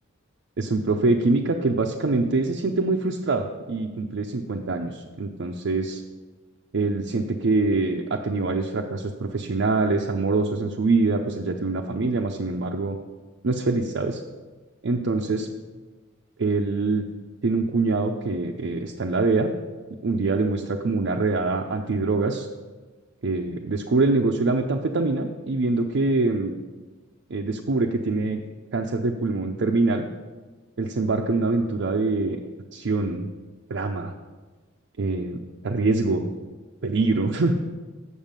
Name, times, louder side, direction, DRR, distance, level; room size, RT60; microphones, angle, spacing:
voice 1, 0.6-6.0 6.7-13.0 13.4-14.2 14.8-15.5 16.4-17.0 17.4-19.5 20.0-22.5 23.2-26.5 27.3-28.4 28.7-30.1 30.8-32.4 32.7-33.3 33.7-34.1 35.0-36.3 36.8-37.5, right 3 dB, 60° right, 1 dB, 0.5 m, -24 dB
7.2 x 6.6 x 5.2 m, 1.3 s
head